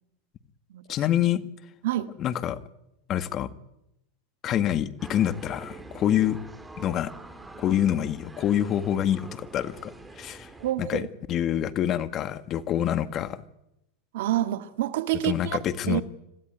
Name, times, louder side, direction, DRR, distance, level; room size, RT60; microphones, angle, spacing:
voice 1, 0.9-1.4 2.2-2.6 3.1-3.5 4.4-6.4 6.8-7.1 7.6-10.5 10.8-13.4 15.2-16.0, left 11 dB, 40° left, 1.8 m, -26 dB
sound 1, 5.0-10.7, right 2 dB, 10° right, 3.6 m, -45 dB
voice 2, 10.6-11.1 14.1-15.6 15.9-16.0, right 14 dB, 70° right, 1.7 m, -27 dB
26.5 x 16.5 x 9.3 m
hypercardioid pair, 110°, 0 cm